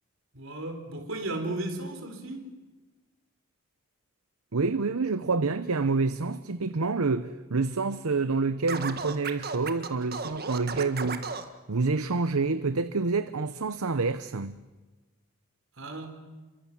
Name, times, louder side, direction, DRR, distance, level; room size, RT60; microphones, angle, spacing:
voice 1, 0.3-2.5 15.8-16.1, right 2 dB, 65° right, 4.2 m, -35 dB
voice 2, 4.5-11.4 11.7-14.6, right 4 dB, 80° right, 0.8 m, -28 dB
Scratching (performance technique), 8.7-11.5, right 5 dB, 45° right, 1.7 m, -34 dB
28.5 x 24.0 x 7.4 m
head